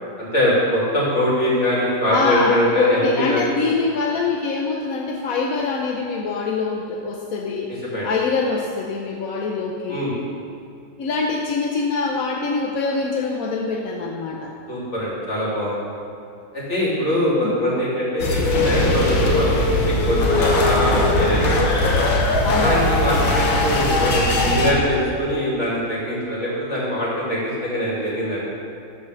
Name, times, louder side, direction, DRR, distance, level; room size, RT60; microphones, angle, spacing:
voice 1, 0.2-3.5 7.7-8.1 9.9-10.2 14.7-15.8 16.5-21.7 22.6-28.4, equal, 35° left, -6 dB, 3.0 m, -22 dB
voice 2, 2.1-10.1 11.0-14.5 17.4-17.6 22.4-23.0, left 4 dB, 60° left, 0 dB, 1.0 m, -24 dB
sound 1, 18.2-24.7, left 2 dB, 80° left, 2.1 m, -19 dB
13.5 x 4.9 x 6.5 m, 2.6 s
omnidirectional pair, 2.1 m